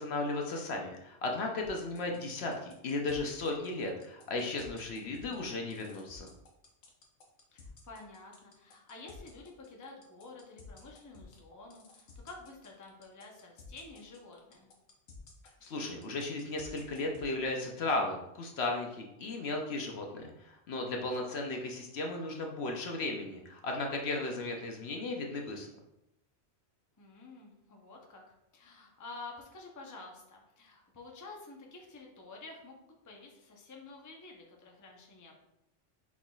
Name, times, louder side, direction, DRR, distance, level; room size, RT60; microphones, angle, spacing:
voice 1, 0.0-6.3 15.6-25.7, left 2 dB, 65° left, 2 dB, 0.9 m, -35 dB
sound 1, 1.6-17.3, left 4 dB, 85° left, 1.2 m, -54 dB
voice 2, 7.5-14.7 21.0-21.4 27.0-28.2 28.5-35.4, left 3 dB, 20° left, 0 dB, 0.6 m, -50 dB
6.2 x 3.6 x 2.3 m, 0.85 s
omnidirectional pair, 1.2 m